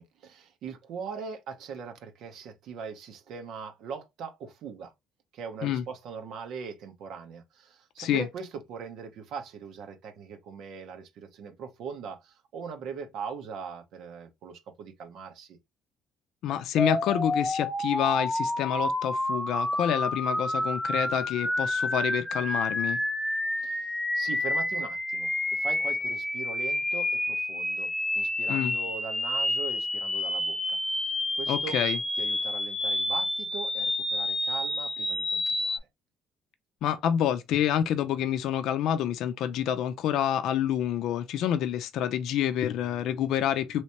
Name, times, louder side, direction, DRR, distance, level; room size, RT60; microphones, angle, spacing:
voice 1, 0.0-4.9 5.3-15.6 23.6-31.8 32.2-35.8, right 6 dB, 65° right, 0.9 m, -41 dB
voice 2, 16.4-23.0 28.5-28.7 31.5-32.0 36.8-43.8, left 10 dB, 70° left, 0.4 m, -28 dB
sound 1, 16.8-35.8, left 1 dB, 10° left, 0.5 m, -29 dB
3.2 x 3.0 x 2.8 m
cardioid pair, 145°, 0 cm